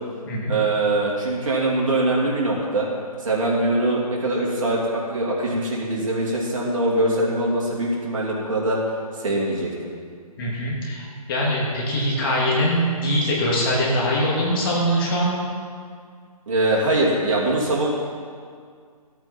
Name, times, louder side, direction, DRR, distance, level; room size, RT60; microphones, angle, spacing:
voice 1, 0.5-2.9 3.2-4.8 5.1-8.8 9.2-9.7 16.5-17.9, right 2 dB, 55° right, -3 dB, 2.9 m, -22 dB
voice 2, 10.4-15.4, equal, 35° left, -4 dB, 2.9 m, -22 dB
14.5 x 8.6 x 4.4 m, 2.1 s
hypercardioid pair, 155°, 20 cm